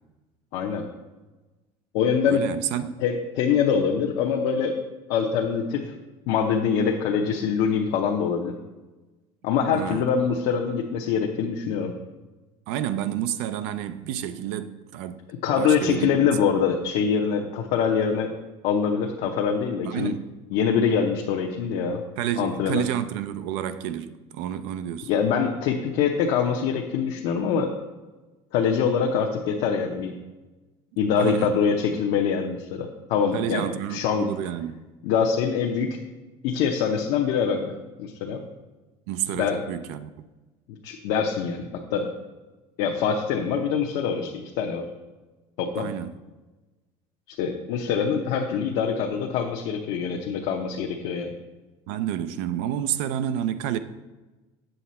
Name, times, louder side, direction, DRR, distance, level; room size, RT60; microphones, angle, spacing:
voice 1, 0.5-0.8 1.9-2.4 3.0-4.8 5.1-5.8 6.3-8.5 9.4-11.9 15.4-18.3 18.6-20.1 20.5-22.0 22.4-22.8 25.1-27.7 28.5-30.1 31.0-33.6 33.9-34.3 35.0-36.0 36.4-37.7 38.0-38.4 39.4-39.6 40.8-42.1 42.8-44.9 45.6-45.9 47.4-51.3, left 6 dB, 65° left, 0.8 m, -24 dB
voice 2, 2.3-2.9 9.7-10.1 12.7-15.2 15.6-16.3 19.8-20.3 22.2-25.1 31.2-31.5 33.3-34.8 39.1-40.1 45.8-46.2 51.9-53.8, right 10 dB, 85° right, 0.5 m, -30 dB
7.9 x 6.7 x 4.2 m
cardioid pair, 170°, 13 cm